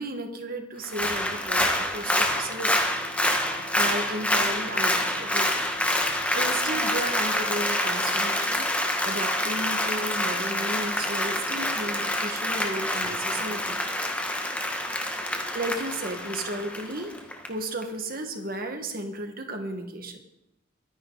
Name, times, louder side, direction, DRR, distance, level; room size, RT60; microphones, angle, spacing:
voice 1, 0.0-2.8 3.7-5.9 6.3-13.8 14.9-17.1 17.5-20.2, right 1 dB, 50° right, 5 dB, 1.9 m, -34 dB
Applause, 0.8-17.5 17.8-17.9, left 1 dB, 5° left, 1.5 m, -27 dB
sound 1, 2.2-8.8, left 2 dB, 40° left, 4.2 m, -50 dB
23.5 x 10.0 x 4.1 m, 0.87 s
head